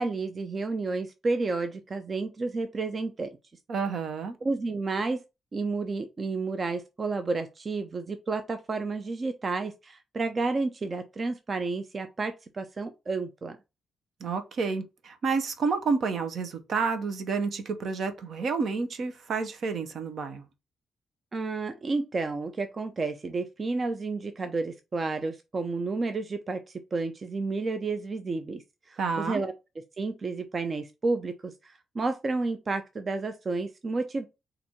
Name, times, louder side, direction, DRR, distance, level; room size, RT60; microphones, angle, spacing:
voice 1, 0.0-3.4 4.4-5.2 5.5-13.6 21.3-26.6 26.9-28.6 28.9-29.5 30.0-34.3, right 3 dB, 45° right, 0.6 m, -31 dB
voice 2, 3.7-4.4 14.2-20.5 29.0-29.4, right 4 dB, 70° right, 0.9 m, -30 dB
4.3 x 2.6 x 4.3 m
supercardioid pair, 50°, 0 cm